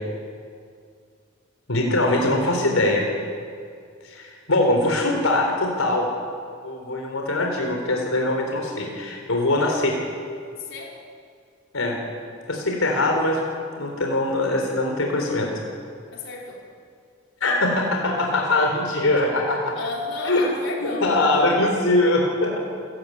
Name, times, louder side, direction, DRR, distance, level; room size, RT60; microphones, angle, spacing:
voice 1, 1.7-3.1 4.0-6.1 6.6-9.9 11.7-12.0 12.5-15.5 17.4-19.8 20.3-20.4 20.8-22.6, left 2 dB, 90° left, 1 dB, 3.9 m, -22 dB
voice 2, 10.6-10.9 16.1-16.6 19.7-21.1, left 3 dB, 65° left, -1 dB, 4.8 m, -32 dB
28.5 x 15.5 x 9.4 m, 2.2 s
head